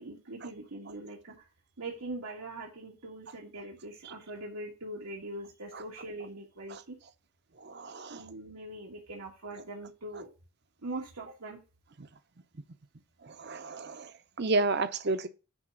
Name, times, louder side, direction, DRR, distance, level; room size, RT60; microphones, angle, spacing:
voice 1, 0.0-1.5 1.8-7.0 8.1-10.3 10.8-11.6, right 2 dB, 90° right, 1.6 m, -42 dB
voice 2, 7.7-8.2 13.4-14.0 14.4-15.3, right 3 dB, 50° right, 0.7 m, -30 dB
9.9 x 3.5 x 6.4 m
head